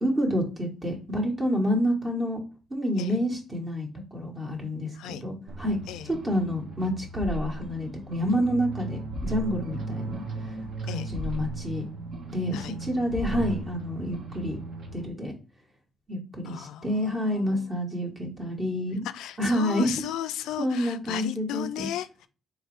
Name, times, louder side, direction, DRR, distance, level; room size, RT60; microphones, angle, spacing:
voice 1, 0.0-2.4 2.7-5.8 6.0-10.1 10.8-11.8 12.3-14.6 14.9-15.3 16.1-19.1 19.4-20.0 20.6-21.9, equal, 25° right, 1.1 m, -28 dB
sound 1, 5.5-15.1, right 2 dB, 55° right, 0.8 m, -36 dB
voice 2, 16.4-17.7 19.1-22.3, left 11 dB, 90° left, 0.3 m, -35 dB
3.6 x 3.0 x 3.1 m
cardioid pair, 90°, 0 cm